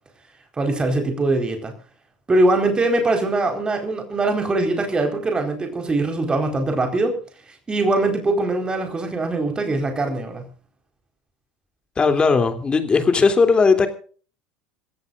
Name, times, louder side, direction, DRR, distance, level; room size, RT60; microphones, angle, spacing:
voice 1, 0.6-1.7 2.3-7.2 7.7-10.5, right 2 dB, 20° right, 4.5 m, -22 dB
voice 2, 12.0-13.9, left 4 dB, 25° left, 3.1 m, -17 dB
27.5 x 14.5 x 2.5 m
figure-of-eight pair, 70°, 4 cm